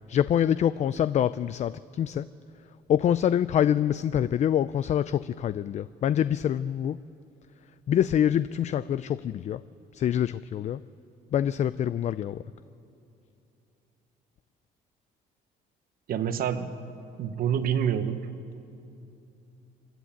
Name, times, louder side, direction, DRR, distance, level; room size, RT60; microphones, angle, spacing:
voice 1, 0.1-2.3 2.9-7.0 7.9-9.6 9.9-10.8 11.3-12.4, left 10 dB, 45° left, 15 dB, 0.4 m, -25 dB
voice 2, 16.1-16.8 17.2-18.3, right 8 dB, 60° right, 10 dB, 1.2 m, -27 dB
26.5 x 11.0 x 8.8 m, 2.7 s
cardioid pair, 110°, 17 cm